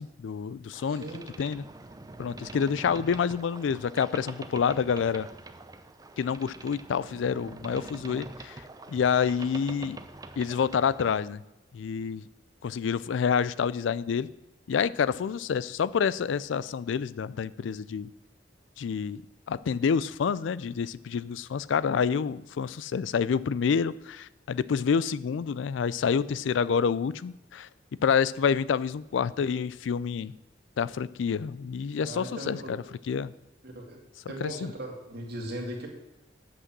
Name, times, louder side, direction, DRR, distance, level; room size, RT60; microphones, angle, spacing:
voice 1, 0.0-1.0 1.4-1.6 2.2-5.3 6.2-8.6 8.9-10.0 10.4-11.4 11.7-12.2 12.6-14.3 14.7-18.1 18.8-19.2 19.5-27.7 28.0-30.3 30.8-32.8 33.1-33.3 34.4-34.7, left 6 dB, 80° left, 18 dB, 0.4 m, -28 dB
Boat Water vehicle, 0.7-11.3, right 2 dB, 20° right, 0.5 m, -45 dB
voice 2, 0.9-1.3 32.0-32.7 33.6-34.0 34.3-35.9, right 1 dB, 55° right, 1 dB, 2.2 m, -38 dB
8.2 x 6.1 x 7.3 m, 1.0 s
head